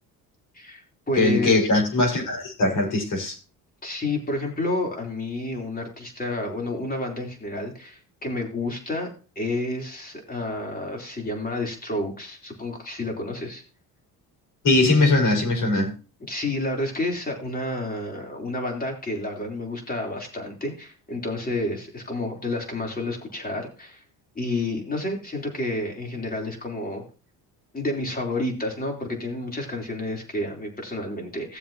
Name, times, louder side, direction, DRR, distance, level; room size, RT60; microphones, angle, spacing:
voice 1, 0.5-1.7 3.8-9.1 9.4-13.6 16.3-24.0 24.4-27.1 27.7-31.6, left 2 dB, 25° left, 1 dB, 3.8 m, -30 dB
voice 2, 1.2-3.4 14.6-15.9, left 2 dB, 50° left, 0 dB, 5.2 m, -20 dB
16.5 x 7.2 x 2.9 m, 0.35 s
cardioid pair, 95°, 38 cm